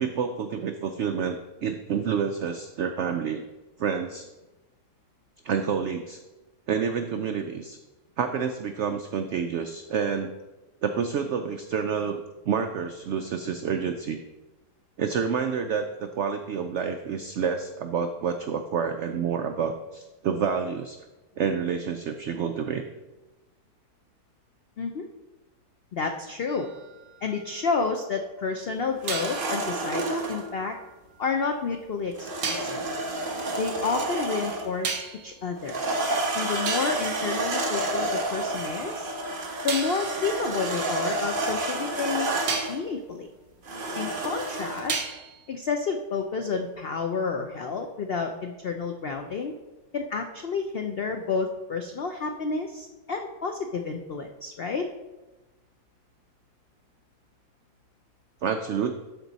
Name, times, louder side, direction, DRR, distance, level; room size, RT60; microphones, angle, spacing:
voice 1, 0.0-3.4 3.8-4.3 5.4-6.2 6.7-7.8 8.2-10.3 10.8-14.2 15.0-21.0 21.4-22.8 58.4-58.9, right 6 dB, 80° right, 7 dB, 0.6 m, -28 dB
voice 2, 25.9-26.7 27.2-30.7 31.2-32.8 33.6-35.8 36.3-39.1 39.6-42.3 42.7-43.3 43.9-45.0 45.5-49.5 49.9-54.8, left 4 dB, 75° left, 5 dB, 0.5 m, -30 dB
sound 1, 26.5-27.9 29.1-31.2 32.4-32.8 34.8-35.4 36.2-36.3 36.7-38.3 39.7-41.8 42.5-42.9 44.9-45.5, right 5 dB, 65° right, 1.4 m, -36 dB
sound 2, 29.0-30.5 32.2-34.8 35.6-42.8 43.6-44.9, right 2 dB, 35° right, 1.1 m, -30 dB
12.5 x 4.5 x 4.0 m, 1.1 s
omnidirectional pair, 1.8 m